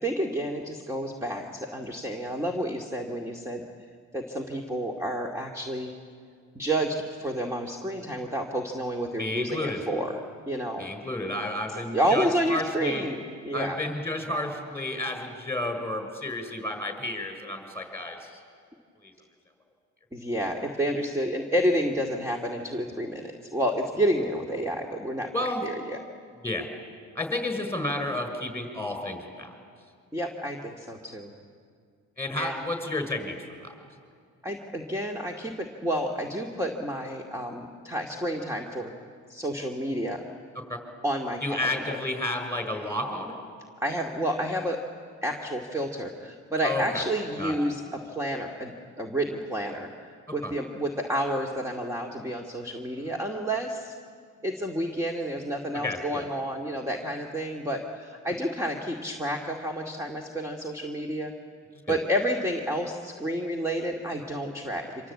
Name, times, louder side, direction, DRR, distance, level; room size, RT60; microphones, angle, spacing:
voice 1, 0.0-3.6 4.1-5.9 6.5-10.2 10.5-10.9 11.9-13.8 20.1-26.0 30.1-31.3 32.3-32.6 34.4-38.9 39.3-40.2 41.0-42.0 43.8-44.8 45.2-49.9 50.3-53.9 54.4-61.3 61.9-65.1, equal, 10° right, 1 dB, 2.4 m, -30 dB
voice 2, 9.2-9.8 10.8-13.0 13.5-18.4 19.0-19.1 25.3-25.6 26.4-26.7 27.1-29.5 32.2-33.7 40.7-40.8 41.4-43.4 46.6-47.0 47.4-47.6 50.4-50.5 55.8-56.3 61.9-62.0, left 1 dB, 10° left, 6 dB, 6.1 m, -31 dB
27.0 x 26.0 x 8.6 m, 2.2 s
cardioid pair, 90°, 30 cm